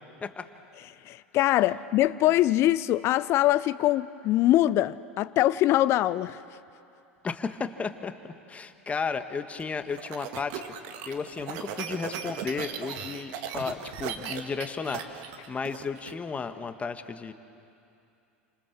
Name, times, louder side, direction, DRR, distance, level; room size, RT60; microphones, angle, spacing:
voice 1, 1.1-6.4, left 14 dB, 40° left, 0.5 m, -23 dB
voice 2, 7.2-8.1 8.5-10.6 11.0-17.3, left 5 dB, 20° left, 1.5 m, -34 dB
sound 1, 9.6-16.1, right 8 dB, 50° right, 2.1 m, -37 dB
29.5 x 26.5 x 7.3 m
figure-of-eight pair, 80°, 7 cm